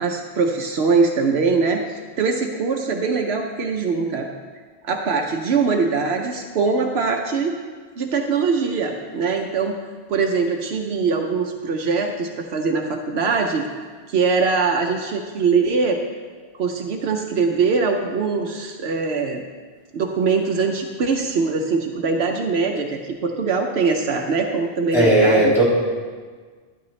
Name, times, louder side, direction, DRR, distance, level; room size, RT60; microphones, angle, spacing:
voice 1, 0.0-4.3 4.8-7.5 8.0-9.8 10.1-13.6 14.1-16.0 16.5-19.4 19.9-25.6, right 4 dB, 75° right, 3 dB, 1.0 m, -22 dB
voice 2, 24.9-25.6, right 1 dB, ahead, -7 dB, 3.3 m, -15 dB
12.5 x 9.7 x 3.2 m, 1.5 s
omnidirectional pair, 1.1 m